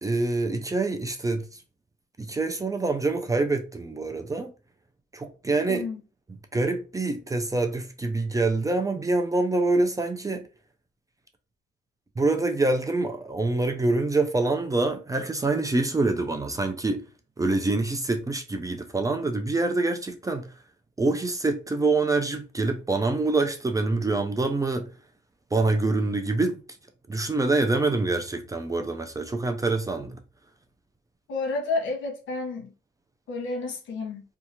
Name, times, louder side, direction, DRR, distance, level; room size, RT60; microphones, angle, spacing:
voice 1, 0.0-1.6 2.2-4.5 5.1-5.9 6.5-10.5 12.2-17.1 17.4-20.5 21.0-24.9 25.5-26.6 27.1-30.2, right 3 dB, 15° right, 0.4 m, -25 dB
voice 2, 5.7-6.0 31.3-32.7 33.3-34.2, left 3 dB, 75° left, 1.0 m, -30 dB
2.7 x 2.3 x 2.7 m
cardioid pair, 90°, 20 cm